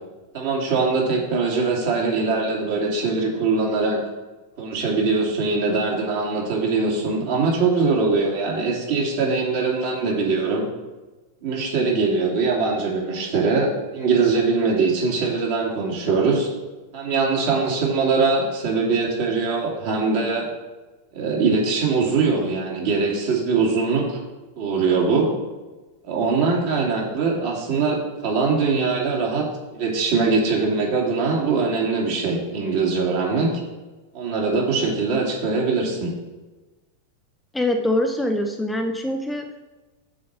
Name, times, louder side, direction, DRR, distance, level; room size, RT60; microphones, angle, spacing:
voice 1, 0.3-4.0 4.6-10.6 11.4-16.5 16.9-20.5 21.1-24.2 24.6-25.3 26.1-29.5 29.7-33.5 34.1-36.1, right 4 dB, 50° right, -2 dB, 2.5 m, -22 dB
voice 2, 37.5-39.6, left 1 dB, 5° left, 4 dB, 0.6 m, -24 dB
7.6 x 4.4 x 6.5 m, 1.2 s
figure-of-eight pair, 90°, 0 cm